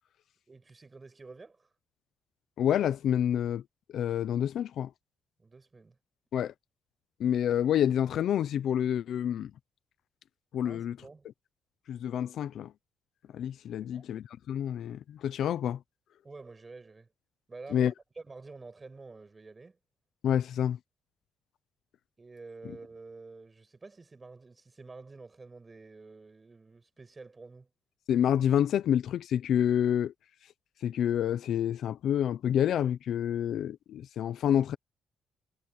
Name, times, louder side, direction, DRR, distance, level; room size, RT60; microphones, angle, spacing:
voice 1, 0.5-1.7 5.4-6.0 10.6-11.3 13.7-14.1 16.2-17.1 17.5-19.8 22.2-27.7, right 3 dB, 25° right, 7.6 m, -49 dB
voice 2, 2.6-3.6 3.9-4.9 6.3-6.5 7.2-9.5 10.5-11.0 11.9-12.7 13.3-15.8 17.7-17.9 20.2-20.8 28.1-30.1 30.8-34.8, left 10 dB, 70° left, 0.9 m, -28 dB
cardioid pair, 90°, 0 cm